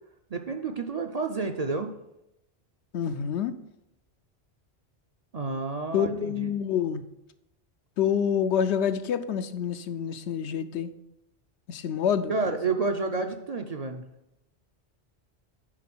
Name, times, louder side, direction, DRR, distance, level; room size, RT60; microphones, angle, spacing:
voice 1, 0.3-1.9 5.3-6.5 12.3-14.0, right 4 dB, 45° right, 5 dB, 0.5 m, -30 dB
voice 2, 2.9-3.5 5.9-7.0 8.0-10.9 11.7-12.5, left 8 dB, 80° left, 11 dB, 0.9 m, -27 dB
9.9 x 3.8 x 6.0 m, 0.86 s
omnidirectional pair, 1.1 m